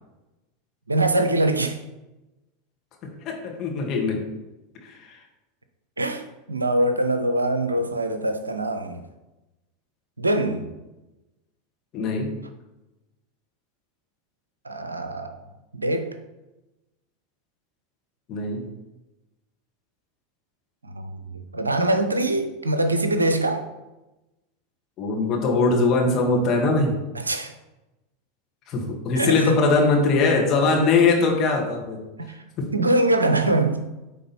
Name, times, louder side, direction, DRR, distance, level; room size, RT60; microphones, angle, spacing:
voice 1, 0.9-1.8 6.0-6.2 6.5-9.0 10.2-10.7 14.6-15.4 15.7-16.1 20.8-23.7 27.1-27.5 29.2-29.6 32.7-33.8, right 1 dB, 85° right, 8 dB, 0.6 m, -23 dB
voice 2, 3.3-4.2 4.8-5.0 11.9-12.3 18.3-18.7 25.0-27.0 28.7-32.0, left 3 dB, 40° left, 0 dB, 1.8 m, -21 dB
9.1 x 3.6 x 4.2 m, 1.0 s
figure-of-eight pair, 85°, 0 cm